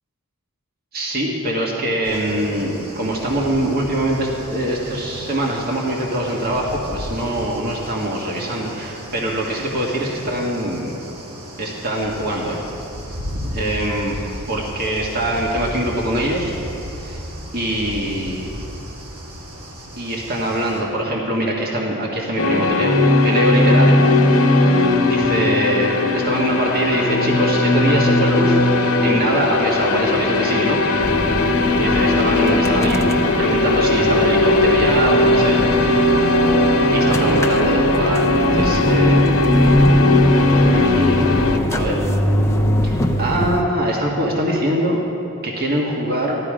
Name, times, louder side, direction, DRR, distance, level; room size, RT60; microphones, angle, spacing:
voice 1, 0.9-11.0 11.6-12.6 13.5-14.1 14.5-16.5 17.0-17.2 17.5-18.5 20.0-24.4 25.1-28.6 29.0-30.8 31.7-33.1 33.4-36.1 36.9-39.3 40.5-41.2 41.7-42.0 42.8-45.0 45.4-46.4, right 1 dB, 45° right, -2 dB, 1.6 m, -23 dB
sound 1, 2.0-20.8, equal, 85° right, 2.4 m, -34 dB
sound 2, 22.4-41.6, left 2 dB, 75° left, 1.1 m, -17 dB
sound 3, 31.0-43.6, equal, 15° left, 0.7 m, -24 dB
14.5 x 12.5 x 5.0 m, 3.0 s
head